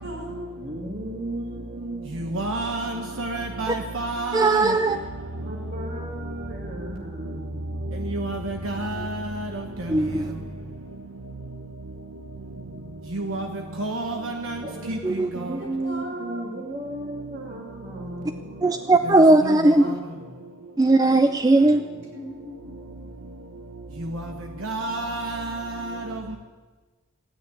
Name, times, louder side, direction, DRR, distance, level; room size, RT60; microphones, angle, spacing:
voice 1, 0.0-0.6 8.6-9.0 15.8-16.5 19.8-19.9 22.1-22.7, equal, 60° right, 5.6 m, -37 dB
voice 2, 0.5-2.4 5.4-8.0 14.6-20.4 21.5-22.2, right 1 dB, 45° right, 2.1 m, -36 dB
voice 3, 2.3-4.7 8.1-9.3 13.1-13.5 13.8-14.6 14.9-15.0 19.4-19.6 24.6-26.0, right 2 dB, 85° right, 1.1 m, -29 dB
voice 4, 4.3-5.0 9.9-10.3 15.0-15.3 18.6-19.9 20.8-21.8, right 2 dB, 20° right, 0.4 m, -18 dB
15.5 x 9.6 x 8.5 m
head